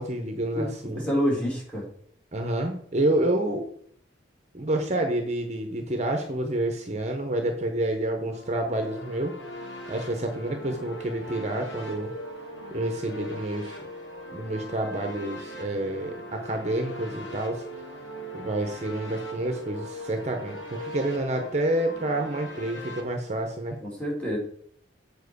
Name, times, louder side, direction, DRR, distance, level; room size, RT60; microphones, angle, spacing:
voice 1, 0.0-1.0 2.3-3.7 4.5-9.3 9.9-12.1 12.7-13.7 14.3-17.6 18.3-23.8, right 1 dB, 35° right, 4 dB, 0.9 m, -28 dB
voice 2, 1.0-1.8 23.8-24.4, equal, 5° left, -2 dB, 2.5 m, -27 dB
sound 1, 8.2-23.0, right 1 dB, 80° left, 2.0 m, -40 dB
7.4 x 4.4 x 6.8 m, 0.63 s
head